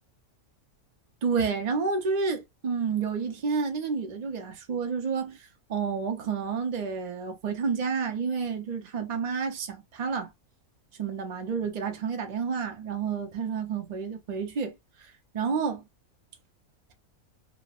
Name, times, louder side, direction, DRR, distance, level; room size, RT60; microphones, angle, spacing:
voice 1, 1.2-10.3 11.0-15.8, right 5 dB, 85° right, 0.3 m, -30 dB
3.2 x 2.0 x 2.3 m
omnidirectional pair, 1.5 m